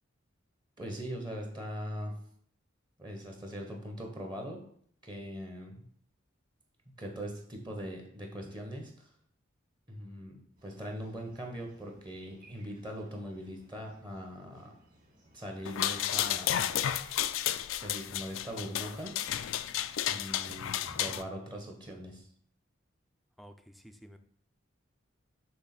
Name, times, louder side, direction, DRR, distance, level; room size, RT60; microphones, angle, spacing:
voice 1, 0.8-2.1 3.0-4.6 5.0-5.8 7.0-9.1 9.9-14.7 15.3-16.5 17.5-17.6 17.8-19.1 20.1-22.3, equal, 20° right, 2 dB, 0.9 m, -41 dB
sound 1, 10.6-16.2, right 1 dB, 40° right, 2.2 m, -63 dB
sound 2, 15.6-21.2, left 11 dB, 80° left, 0.4 m, -32 dB
voice 2, 23.4-24.2, equal, ahead, 7 dB, 0.4 m, -52 dB
6.1 x 3.4 x 5.8 m, 0.62 s
head